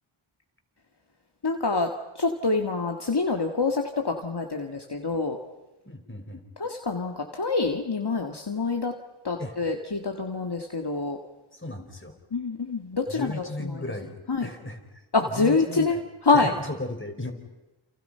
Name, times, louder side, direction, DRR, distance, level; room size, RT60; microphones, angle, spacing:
voice 1, 1.4-1.9 2.2-5.4 6.6-8.9 9.2-11.2 12.3-13.8 14.3-14.5 15.1-16.5, left 3 dB, 50° left, 3 dB, 2.1 m, -26 dB
voice 2, 5.8-6.4 9.4-9.6 11.5-12.1 13.1-16.0 16.3-17.3, left 1 dB, 25° left, 3 dB, 5.1 m, -36 dB
29.5 x 28.5 x 5.7 m, 1.0 s
wide cardioid pair, 45°, 50 cm